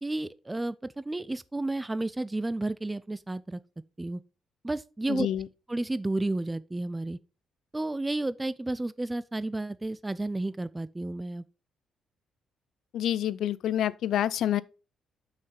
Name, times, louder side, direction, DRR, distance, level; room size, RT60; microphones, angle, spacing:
voice 1, 0.0-3.6 4.0-4.2 4.6-5.3 5.7-7.2 7.7-11.4, right 2 dB, 15° right, 0.4 m, -32 dB
voice 2, 5.1-5.5 12.9-14.6, left 11 dB, 75° left, 0.5 m, -27 dB
6.3 x 5.7 x 5.7 m
cardioid pair, 90°, 0 cm